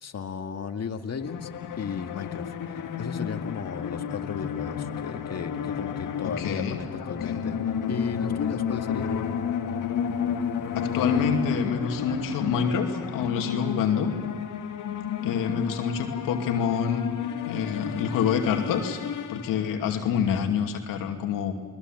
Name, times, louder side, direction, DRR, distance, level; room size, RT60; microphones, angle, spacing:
voice 1, 0.0-1.5 1.8-7.6 7.9-9.2, left 6 dB, 50° left, 6 dB, 2.0 m, -35 dB
sound 1, 1.2-20.0, left 8 dB, 70° left, 1.9 m, -31 dB
voice 2, 6.2-6.8 7.2-7.3 10.7-14.1 15.2-17.0 17.4-19.0 19.3-21.5, left 7 dB, 90° left, 4 dB, 2.6 m, -27 dB
29.5 x 20.5 x 7.6 m, 1.4 s
supercardioid pair, 60°, 32 cm